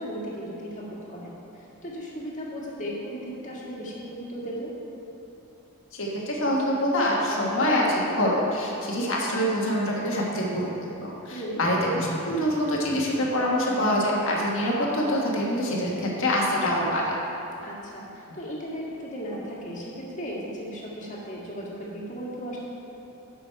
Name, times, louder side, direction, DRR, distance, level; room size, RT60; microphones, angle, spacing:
voice 1, 0.0-4.7 11.3-11.6 17.6-22.6, equal, 35° left, -5 dB, 1.8 m, -36 dB
voice 2, 5.9-10.7 11.0-17.2, equal, 60° left, -3 dB, 1.4 m, -25 dB
11.0 x 6.3 x 4.6 m, 2.9 s
head